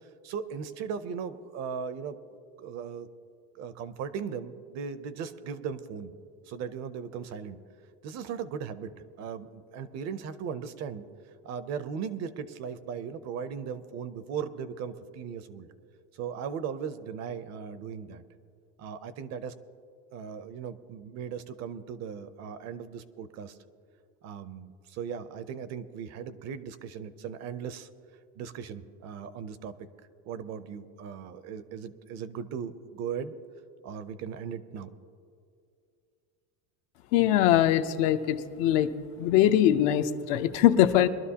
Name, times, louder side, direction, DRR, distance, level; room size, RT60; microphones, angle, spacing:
voice 1, 0.2-2.2 2.6-3.1 3.5-6.1 6.5-7.6 8.0-11.1 11.4-15.7 16.1-18.2 18.8-19.5 20.1-23.6 24.2-27.9 28.3-29.7 30.3-33.3 33.8-34.9, right 7 dB, 40° right, 13 dB, 0.6 m, -37 dB
voice 2, 37.1-38.9 39.2-41.1, left 11 dB, 70° left, 9 dB, 0.8 m, -22 dB
22.5 x 12.0 x 2.8 m, 2.4 s
cardioid pair, 150°, 40 cm